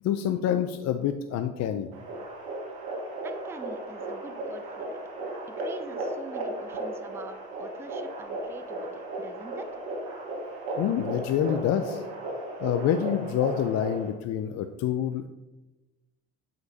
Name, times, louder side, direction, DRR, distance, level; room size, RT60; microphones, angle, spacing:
voice 1, 0.0-1.9 10.8-12.0 12.6-15.3, left 9 dB, 50° left, 8 dB, 0.5 m, -27 dB
sound 1, 1.9-14.1, right 1 dB, 70° right, 1.5 m, -35 dB
voice 2, 3.2-5.0 5.6-9.7, right 3 dB, 5° right, 9 dB, 0.4 m, -45 dB
7.7 x 5.1 x 2.7 m, 1.0 s
supercardioid pair, 75°, 36 cm